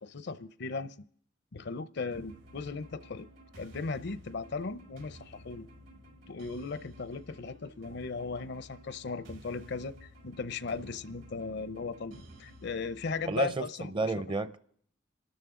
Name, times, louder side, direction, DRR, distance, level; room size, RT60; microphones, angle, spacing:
voice 1, 0.0-0.9 1.5-3.3 3.6-5.7 6.3-14.1, left 4 dB, 65° left, 0.7 m, -37 dB
sound 1, 2.1-13.5, equal, 80° right, 4.7 m, -53 dB
voice 2, 13.2-14.6, right 3 dB, 25° right, 0.7 m, -31 dB
28.0 x 13.0 x 3.7 m
head